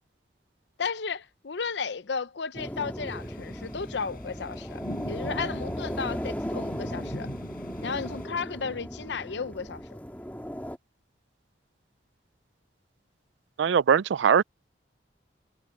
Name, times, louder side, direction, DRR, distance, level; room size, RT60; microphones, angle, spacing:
voice 1, 0.8-4.8 5.1-7.3 7.8-9.8, left 5 dB, 75° left, 0.7 m, -34 dB
sound 1, 2.5-10.8, equal, 10° left, 2.5 m, -37 dB
sound 2, 3.1-8.3, equal, 55° left, 5.5 m, -42 dB
voice 2, 13.6-14.4, right 7 dB, 85° right, 0.4 m, -21 dB
head